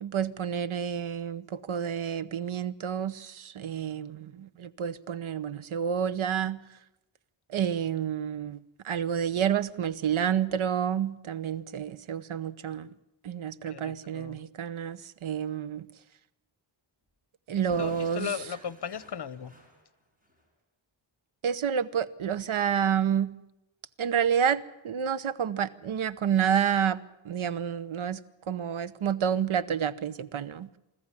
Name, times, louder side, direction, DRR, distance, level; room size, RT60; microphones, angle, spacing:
voice 1, 0.0-6.6 7.5-8.6 8.8-12.9 13.2-15.9 17.5-18.3 21.4-23.3 24.0-28.2 28.5-30.7, right 8 dB, 80° right, 15 dB, 0.9 m, -29 dB
voice 2, 13.7-14.4 17.5-19.5, left 8 dB, 55° left, 17 dB, 1.0 m, -37 dB
Explosion / Shatter, 17.7-20.4, right 1 dB, 15° right, 5.3 m, -52 dB
25.0 x 14.0 x 9.8 m, 0.91 s
wide cardioid pair, 115°, 48 cm